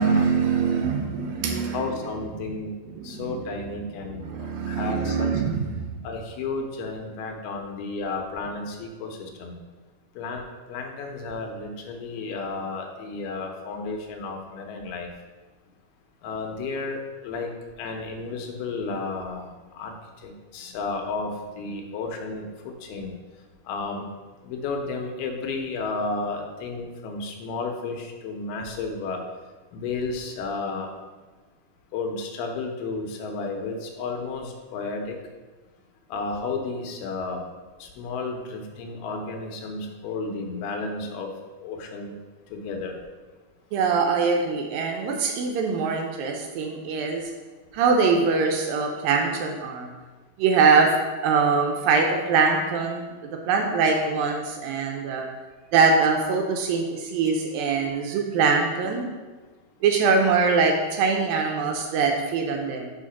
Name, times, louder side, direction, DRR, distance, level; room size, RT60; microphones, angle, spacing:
voice 1, 0.0-1.9 2.9-3.4 4.1-5.9 43.7-47.3 47.7-49.9 50.4-50.9 51.2-53.1 53.5-55.2 55.7-59.1 59.8-62.9, right 5 dB, 75° right, 2 dB, 2.2 m, -23 dB
voice 2, 1.7-2.7 3.0-5.3 6.0-9.6 10.2-10.4 10.7-15.1 16.2-17.5 17.8-20.0 20.2-23.2 23.7-24.1 24.4-29.2 29.7-30.9 31.9-35.2 36.1-37.4 37.8-41.3 41.6-42.1 42.5-43.0, left 3 dB, 80° left, 3 dB, 2.8 m, -32 dB
5.8 x 4.9 x 5.8 m, 1.3 s
omnidirectional pair, 4.4 m